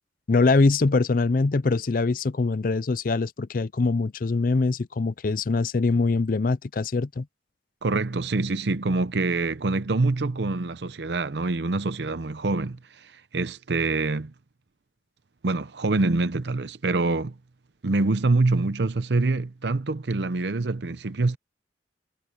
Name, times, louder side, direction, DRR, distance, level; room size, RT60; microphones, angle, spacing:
voice 1, 0.3-7.3, left 3 dB, 50° left, 0.5 m, -23 dB
voice 2, 7.8-14.3 15.4-17.3 17.8-21.4, right 3 dB, 75° right, 0.7 m, -25 dB
head